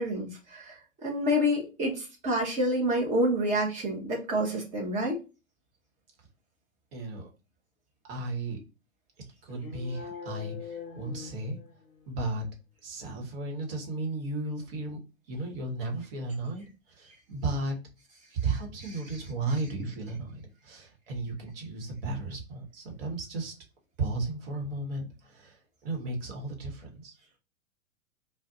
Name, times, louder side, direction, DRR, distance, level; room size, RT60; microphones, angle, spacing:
voice 1, 0.0-5.2, equal, 15° right, 0 dB, 0.8 m, -28 dB
voice 2, 6.9-7.3 8.1-8.6 9.4-11.6 12.1-12.5 12.8-15.0 15.3-16.7 16.9-17.8 18.3-23.5 24.0-27.1, right 2 dB, 45° right, 1 dB, 1.2 m, -34 dB
sound 1, 9.5-12.0, left 6 dB, 25° left, 0.6 m, -42 dB
2.5 x 2.2 x 3.7 m, 0.30 s
figure-of-eight pair, 105°, 41 cm